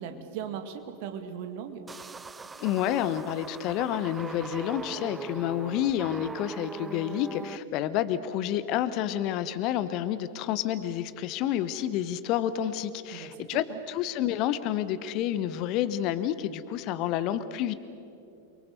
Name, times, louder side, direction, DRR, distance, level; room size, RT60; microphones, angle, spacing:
voice 1, 0.0-1.8 13.1-13.8, right 8 dB, 45° right, 7 dB, 2.2 m, -38 dB
sound 1, 1.9-7.6, right 4 dB, 15° right, 0.5 m, -41 dB
voice 2, 2.6-17.7, left 11 dB, 40° left, 13 dB, 1.1 m, -29 dB
29.0 x 23.0 x 6.9 m, 2.7 s
figure-of-eight pair, 90°, 0 cm